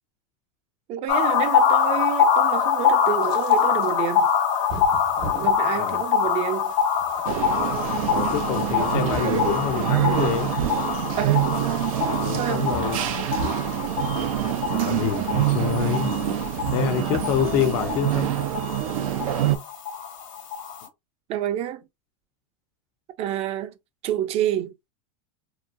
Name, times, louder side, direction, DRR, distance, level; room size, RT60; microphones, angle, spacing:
voice 1, 0.9-4.3 5.4-6.7 11.2-11.5 12.3-12.7 21.3-21.8 23.2-23.7 24.0-24.7, right 11 dB, 35° right, 0.4 m, -28 dB
sound 1, 1.1-20.9, left 7 dB, 70° left, 0.9 m, -25 dB
sound 2, 3.2-3.9 4.7-5.6 6.3-7.2 8.2-9.7 10.8-11.8 13.3-13.7 14.6-16.7 17.1-18.3, right 3 dB, 60° right, 1.0 m, -38 dB
voice 2, 5.7-6.0 8.0-10.5 12.2-13.0 14.7-16.1 16.7-18.3, left 10 dB, 55° left, 0.4 m, -27 dB
sound 3, 7.3-19.6, right 11 dB, 85° right, 0.5 m, -26 dB
2.8 x 2.2 x 2.5 m
supercardioid pair, 135°, 17 cm